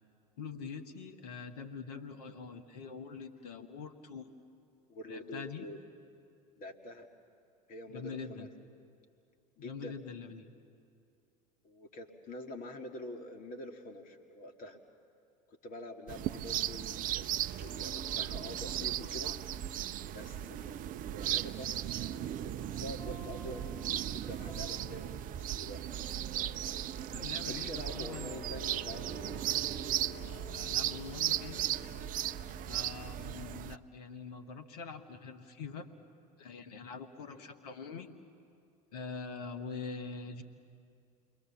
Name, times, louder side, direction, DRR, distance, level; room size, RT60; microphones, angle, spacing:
voice 1, 0.4-4.3 5.1-5.6 7.9-8.5 9.6-10.5 27.1-28.4 30.5-31.7 32.7-35.9 36.4-38.1 38.9-40.4, left 5 dB, 75° left, 8 dB, 1.5 m, -44 dB
voice 2, 4.9-5.8 6.6-7.1 7.7-8.5 9.6-10.0 11.6-14.8 15.5-17.3 17.6-19.3 20.1-20.8 21.1-22.1 22.4-22.5 22.8-23.6 23.9-25.8 27.5-29.2 37.2-37.5, left 1 dB, 45° left, 5 dB, 2.4 m, -46 dB
sound 1, 16.1-33.8, right 12 dB, 40° right, 0.6 m, -36 dB
sound 2, 17.7-33.5, left 1 dB, 15° left, 5.2 m, -52 dB
29.0 x 21.5 x 7.2 m, 2.4 s
hypercardioid pair, 80°, 20 cm